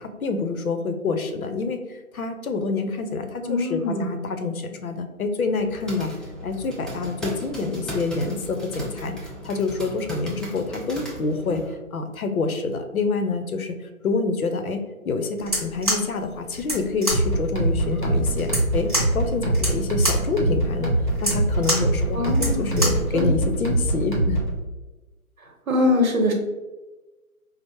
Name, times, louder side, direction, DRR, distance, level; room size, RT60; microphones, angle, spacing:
voice 1, 0.0-6.1 6.4-14.8 15.0-24.4, left 4 dB, 75° left, 6 dB, 0.7 m, -27 dB
voice 2, 3.4-4.2 22.1-23.3 25.7-26.3, left 2 dB, 70° right, 1 dB, 1.0 m, -23 dB
sound 1, 5.5-11.7, equal, ahead, 0.4 m, -36 dB
sound 2, 15.4-23.1, right 1 dB, 25° right, 0.9 m, -28 dB
sound 3, 17.1-24.6, right 1 dB, 35° left, 0.7 m, -24 dB
4.4 x 2.0 x 2.9 m, 1.2 s
hypercardioid pair, 180°, 43 cm